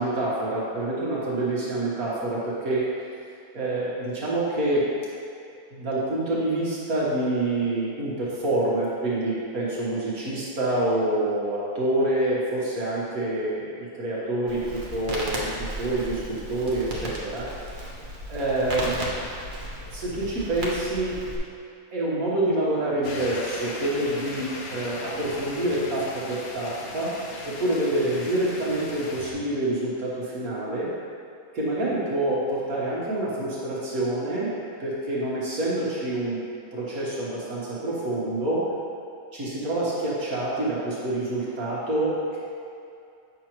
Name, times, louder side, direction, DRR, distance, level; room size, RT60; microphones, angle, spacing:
voice 1, 0.0-2.8 3.5-4.8 5.7-15.5 15.8-17.5 18.3-19.0 19.9-21.2 21.9-27.1 27.5-30.9 31.5-34.5 34.8-36.4 36.7-38.6 39.3-42.4, right 1 dB, 65° right, -7 dB, 1.7 m, -27 dB
Crackle, 14.5-21.4, equal, 40° right, 1.0 m, -35 dB
sound 1, 23.0-29.3, left 2 dB, 70° left, 1.2 m, -38 dB
8.2 x 6.0 x 3.0 m, 2.5 s
omnidirectional pair, 1.6 m